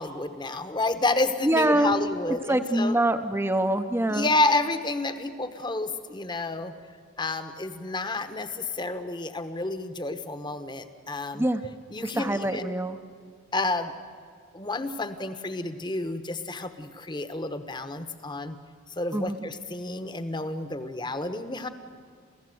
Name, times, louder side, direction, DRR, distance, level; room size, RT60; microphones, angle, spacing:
voice 1, 0.0-2.9 4.1-6.7 7.2-11.5 11.9-12.8 13.5-13.9 14.5-18.6 19.0-21.7, left 2 dB, 20° left, 10 dB, 1.0 m, -30 dB
voice 2, 1.4-4.3 11.3-11.6 12.0-13.0 19.1-19.4, right 1 dB, 10° right, 9 dB, 0.7 m, -25 dB
28.0 x 15.5 x 7.8 m, 2.2 s
head